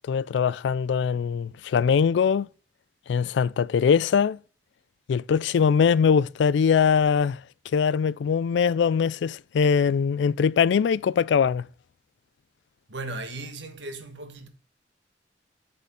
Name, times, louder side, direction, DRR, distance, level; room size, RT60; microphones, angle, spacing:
voice 1, 0.1-2.5 3.1-4.4 5.1-7.4 7.7-11.6, left 6 dB, 70° left, 0.3 m, -22 dB
voice 2, 12.9-14.5, right 2 dB, 85° right, 1.4 m, -36 dB
8.1 x 4.2 x 5.5 m
head